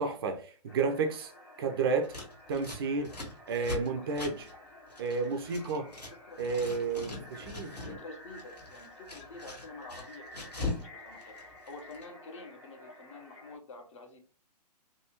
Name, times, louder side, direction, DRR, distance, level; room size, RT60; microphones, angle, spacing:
voice 1, 0.0-1.3 1.6-2.1 2.5-3.1 3.5-4.5 5.0-5.9 6.4-7.1 7.5-7.8, right 4 dB, 35° right, 0.4 m, -31 dB
sound 1, 0.7-13.6, left 1 dB, 10° left, 0.8 m, -52 dB
Scissors, 2.0-6.1 6.4-8.0 8.3-10.9 11.1-12.0, left 2 dB, 80° left, 1.7 m, -41 dB
voice 2, 4.0-4.3 5.8-6.4 6.9-7.2 7.7-11.4 11.7-14.2, left 2 dB, 45° left, 0.9 m, -48 dB
3.4 x 2.2 x 2.9 m
figure-of-eight pair, 120°, 21 cm